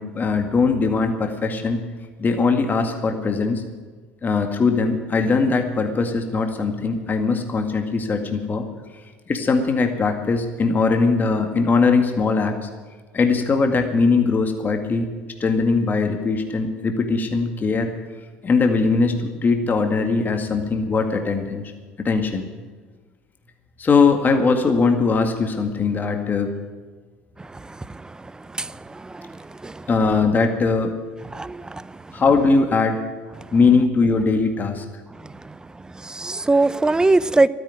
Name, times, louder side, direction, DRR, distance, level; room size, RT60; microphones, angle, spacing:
voice 1, 0.0-1.8 2.2-3.6 4.2-8.6 9.3-12.7 13.1-15.1 15.4-17.9 18.4-21.6 22.0-22.5 23.8-26.5 29.9-30.9 32.1-33.0 33.5-34.8, left 4 dB, 35° left, 5 dB, 2.0 m, -20 dB
voice 2, 31.3-31.8 36.1-37.5, right 2 dB, 15° right, 18 dB, 0.6 m, -19 dB
13.0 x 9.8 x 9.7 m, 1.4 s
hypercardioid pair, 75°, 6 cm